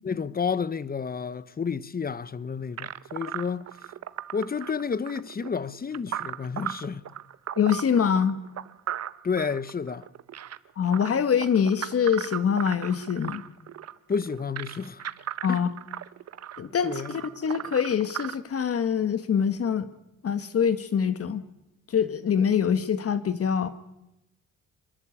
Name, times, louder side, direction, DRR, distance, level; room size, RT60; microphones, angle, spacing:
voice 1, 0.0-3.7 4.3-7.1 9.2-10.1 14.1-15.1 15.5-15.6 16.8-17.1, left 5 dB, 30° left, 1.1 m, -30 dB
sound 1, 2.8-18.3, right 10 dB, 55° right, 1.2 m, -37 dB
voice 2, 7.6-8.4 10.8-13.4 15.4-15.7 16.6-19.9 20.2-21.4 21.9-23.7, left 7 dB, 50° left, 1.6 m, -24 dB
25.5 x 21.5 x 8.6 m
cardioid pair, 90°, 30 cm